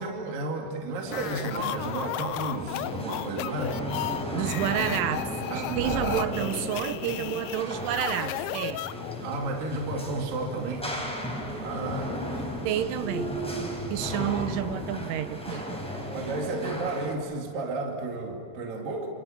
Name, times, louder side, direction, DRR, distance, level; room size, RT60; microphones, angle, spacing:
voice 1, 0.0-3.8 5.5-6.4 9.2-10.9 11.4-12.5 16.1-19.1, right 3 dB, 50° right, 1 dB, 3.6 m, -32 dB
sound 1, 1.0-17.1, left 1 dB, ahead, 3.9 m, -35 dB
sound 2, 1.1-9.3, left 14 dB, 80° left, 2.8 m, -35 dB
voice 2, 4.3-8.9 12.6-15.8, right 11 dB, 80° right, 11 dB, 3.3 m, -30 dB
29.5 x 29.0 x 5.9 m, 2.5 s
omnidirectional pair, 5.7 m